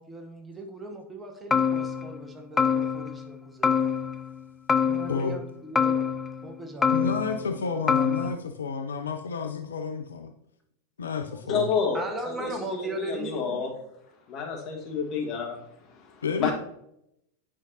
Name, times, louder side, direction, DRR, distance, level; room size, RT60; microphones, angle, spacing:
voice 1, 0.0-4.0 4.8-6.1 6.4-7.1 11.3-11.4 11.9-13.6, right 2 dB, 15° right, 3 dB, 1.0 m, -38 dB
sound 1, 1.5-2.2 2.6-3.3 3.6-4.4 4.7-5.5 5.8-6.5 6.8-7.6 7.9-8.3, left 6 dB, 15° left, 0.4 m, -25 dB
voice 2, 6.9-10.3 11.0-11.7 16.2-16.5, left 5 dB, 70° left, 7 dB, 0.5 m, -30 dB
voice 3, 11.5-13.7 14.3-16.5, left 5 dB, 35° left, 0 dB, 1.6 m, -30 dB
9.8 x 5.1 x 2.8 m, 0.77 s
figure-of-eight pair, 90°, 0 cm